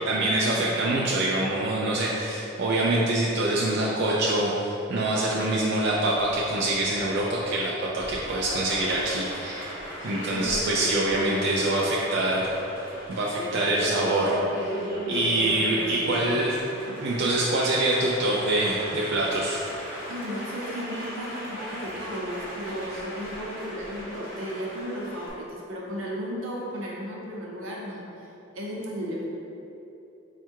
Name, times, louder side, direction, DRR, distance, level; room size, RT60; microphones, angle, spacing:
voice 1, 0.0-9.8 10.0-12.4 13.1-14.8 15.1-16.6 16.9-19.6, right 1 dB, 55° right, -5 dB, 0.4 m, -25 dB
Applause, 5.5-25.3, equal, 10° right, 1.1 m, -36 dB
voice 2, 11.3-12.4 20.1-28.0 28.5-29.2, equal, 80° right, -3 dB, 0.8 m, -35 dB
4.4 x 2.4 x 4.5 m, 2.9 s
head